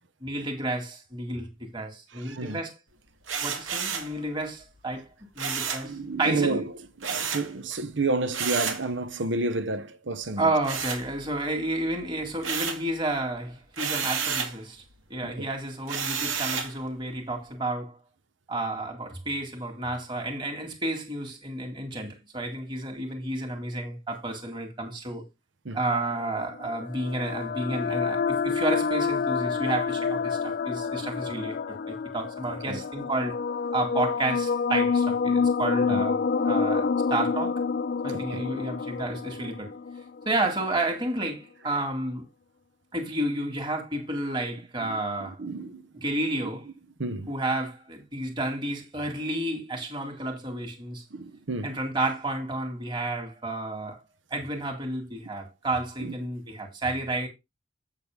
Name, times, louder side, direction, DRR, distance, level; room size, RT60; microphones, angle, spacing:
voice 1, 0.2-2.8 3.4-5.1 5.4-6.6 10.4-14.8 15.1-18.0 18.5-25.3 25.7-33.4 33.7-37.6 38.0-39.7 40.3-42.3 42.9-45.4 46.0-46.7 47.3-51.0 51.6-54.0 54.3-57.3, right 2 dB, 25° right, 2.1 m, -31 dB
voice 2, 2.1-2.6 5.7-6.7 7.0-10.5 15.2-15.4 25.6-25.8 32.7-32.8 35.9-36.0 38.1-38.4 44.8-46.0 47.0-47.3 51.1-51.8 56.0-56.1, right 3 dB, 65° right, 1.0 m, -31 dB
sound 1, 3.3-4.1 5.4-5.9 7.0-7.5 8.3-8.9 10.6-11.5 11.9-12.9 13.7-14.6 15.9-16.8, right 6 dB, 90° right, 2.1 m, -31 dB
sound 2, 26.4-40.5, left 5 dB, 50° left, 0.4 m, -28 dB
8.2 x 6.8 x 3.5 m
head